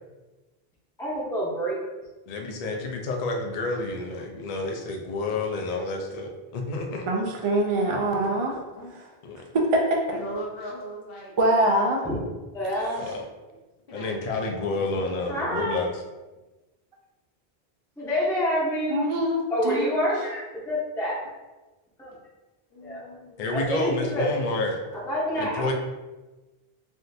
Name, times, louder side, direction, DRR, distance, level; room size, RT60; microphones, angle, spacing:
voice 1, 1.0-1.8 12.0-12.2 12.5-13.1 15.3-15.8 18.0-19.0 19.5-21.2 22.0-22.1 22.8-23.0 23.5-24.4 24.9-25.7, equal, 5° left, -6 dB, 0.6 m, -27 dB
voice 2, 2.3-7.1 7.7-7.9 9.2-9.4 13.0-13.1 13.9-15.9 23.4-24.8 25.4-25.7, left 3 dB, 50° left, 1 dB, 0.5 m, -29 dB
voice 3, 7.1-8.5 9.5-10.0 11.4-12.0 18.9-19.9, right 1 dB, 55° right, 0 dB, 0.3 m, -23 dB
voice 4, 10.1-11.6 13.9-14.2 14.8-14.9 22.7-23.4, right 1 dB, 65° left, -4 dB, 1.0 m, -38 dB
3.6 x 2.4 x 2.6 m, 1.2 s
omnidirectional pair, 1.0 m